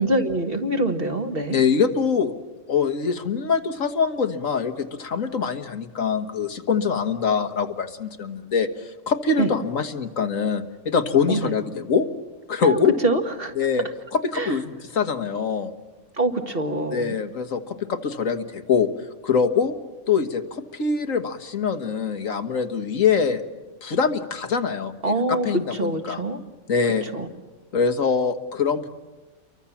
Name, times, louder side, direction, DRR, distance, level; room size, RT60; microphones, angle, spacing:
voice 1, 0.0-1.6 9.4-9.5 11.3-11.5 12.6-13.5 14.3-14.6 16.2-17.0 25.0-26.4 27.1-27.3, right 1 dB, 45° right, 5 dB, 2.0 m, -24 dB
voice 2, 1.5-2.3 2.7-12.1 12.5-12.9 13.6-13.8 14.1-15.7 16.9-18.9 19.2-19.7 20.1-23.4 23.8-26.2 26.7-27.0 27.7-28.9, left 6 dB, 85° left, 7 dB, 1.9 m, -24 dB
29.5 x 23.5 x 7.2 m, 1.2 s
omnidirectional pair, 1.4 m